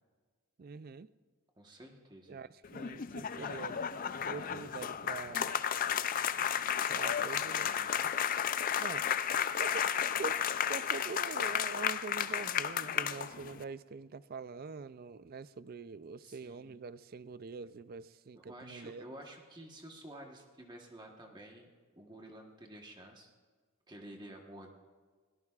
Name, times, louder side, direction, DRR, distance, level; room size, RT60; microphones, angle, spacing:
voice 1, 0.6-1.1 2.3-3.8 4.2-5.5 6.9-7.7 8.8-9.1 9.6-10.4 10.7-19.1, right 4 dB, 45° right, 16 dB, 0.4 m, -44 dB
voice 2, 1.6-2.4 3.4-3.7 4.3-4.7 7.0-8.1 16.2-16.7 18.3-23.3 23.9-24.7, right 1 dB, 20° right, 1 dB, 1.2 m, -51 dB
sound 1, 2.6-13.6, left 8 dB, 40° left, 0.4 m, -33 dB
22.0 x 17.5 x 2.4 m, 1.5 s
head